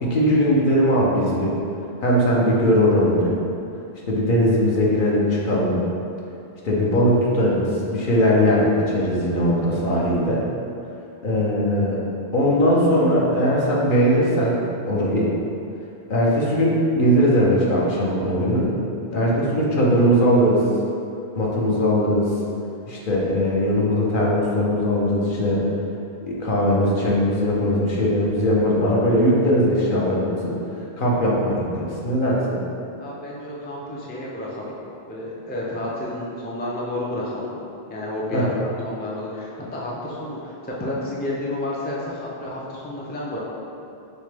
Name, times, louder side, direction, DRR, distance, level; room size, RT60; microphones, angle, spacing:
voice 1, 0.0-1.6 2.0-3.3 4.1-5.8 6.6-10.4 11.2-12.0 12.3-14.6 14.8-15.3 16.1-18.7 19.1-20.7 21.4-22.3 22.8-25.6 26.2-30.5 31.0-32.6 38.3-38.6, equal, 60° left, -4 dB, 0.9 m, -20 dB
voice 2, 33.0-34.7 35.1-37.5 37.9-43.4, left 1 dB, 15° left, -5 dB, 0.3 m, -30 dB
6.5 x 2.2 x 3.3 m, 2.7 s
omnidirectional pair, 1.0 m